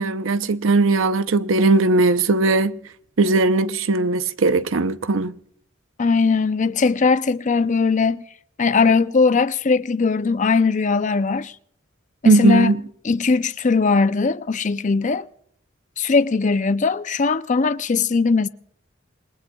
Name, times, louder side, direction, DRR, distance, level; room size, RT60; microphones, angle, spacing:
voice 1, 0.0-2.8 3.2-5.3 12.2-12.8, right 3 dB, 85° right, 0.7 m, -18 dB
voice 2, 6.0-8.2 8.6-11.5 12.2-12.7 13.0-15.3 16.0-18.5, left 4 dB, 40° left, 0.5 m, -19 dB
27.5 x 19.5 x 2.3 m
head